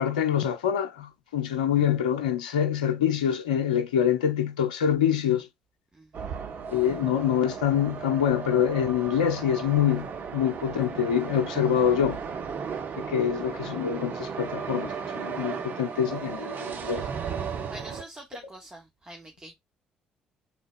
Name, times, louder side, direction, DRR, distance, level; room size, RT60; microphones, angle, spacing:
voice 1, 0.0-5.5 6.7-12.2 12.9-17.0, left 9 dB, 85° left, 0.7 m, -25 dB
voice 2, 5.9-6.3 13.2-13.3 17.7-19.5, right 1 dB, 20° right, 1.3 m, -45 dB
sound 1, 6.1-18.0, right 6 dB, 50° right, 0.9 m, -35 dB
5.2 x 3.7 x 2.4 m
hypercardioid pair, 50°, 4 cm